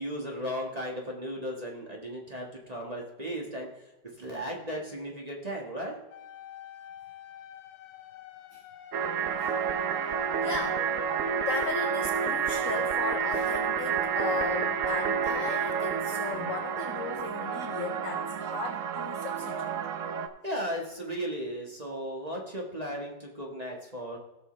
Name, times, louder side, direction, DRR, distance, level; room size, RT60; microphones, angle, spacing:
voice 1, 0.0-3.9 4.2-5.9 20.4-24.2, equal, 20° right, -1 dB, 1.4 m, -36 dB
sound 1, 6.1-13.1, left 9 dB, 90° left, 1.5 m, -47 dB
sound 2, 8.9-20.3, right 7 dB, 80° right, 0.7 m, -30 dB
voice 2, 10.4-10.8 11.5-19.7, left 6 dB, 65° left, 6 dB, 0.8 m, -37 dB
16.0 x 6.3 x 3.2 m, 0.99 s
omnidirectional pair, 2.1 m